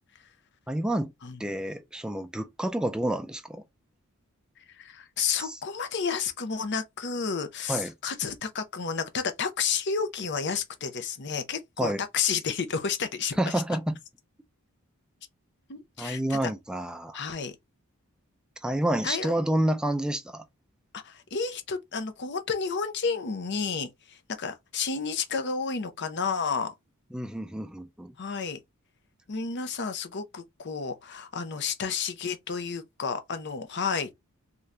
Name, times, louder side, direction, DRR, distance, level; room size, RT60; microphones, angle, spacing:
voice 1, 0.7-1.1 1.4-3.6 5.4-5.6 7.7-7.9 11.8-12.0 13.4-14.0 16.0-17.2 18.6-20.4 27.1-28.1, right 1 dB, 5° right, 0.4 m, -29 dB
voice 2, 4.7-13.4 15.7-16.5 17.1-17.5 19.0-19.3 20.9-26.7 28.2-28.6 29.3-34.1, left 5 dB, 50° left, 0.7 m, -31 dB
3.7 x 2.8 x 3.3 m
head